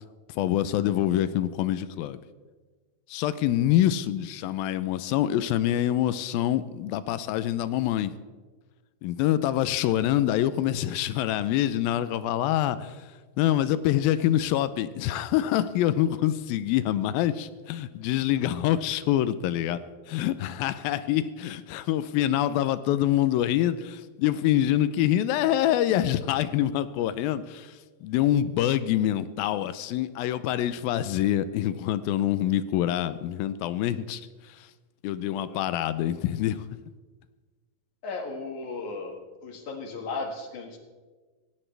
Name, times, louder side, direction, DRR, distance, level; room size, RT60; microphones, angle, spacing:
voice 1, 0.3-2.2 3.1-8.1 9.0-13.1 13.4-19.8 20.1-34.7 35.0-36.7, left 12 dB, 80° left, 14 dB, 2.4 m, -26 dB
voice 2, 35.3-35.6 38.0-39.2 39.4-40.8, left 3 dB, 60° left, 3 dB, 3.0 m, -35 dB
17.5 x 17.0 x 3.3 m, 1.3 s
omnidirectional pair, 4.3 m